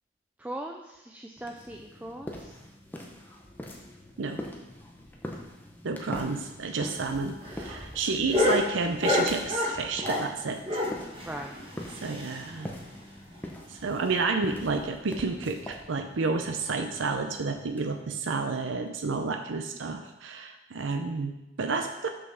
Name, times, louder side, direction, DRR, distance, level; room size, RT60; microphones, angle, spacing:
voice 1, 0.4-2.6 6.1-6.5 11.2-11.8, right 1 dB, 10° right, 2 dB, 0.4 m, -40 dB
sound 1, 1.4-18.9, left 1 dB, 10° left, 0.9 m, -44 dB
voice 2, 5.8-10.8 12.0-12.7 13.7-22.1, right 4 dB, 90° right, 5 dB, 0.6 m, -30 dB
sound 2, 6.9-10.3 10.6-12.6 12.9-13.0 13.3-13.4 13.8-13.9 14.5-14.8 15.6-15.7, left 2 dB, 30° right, 1.6 m, -29 dB
6.5 x 5.5 x 5.8 m, 0.99 s
head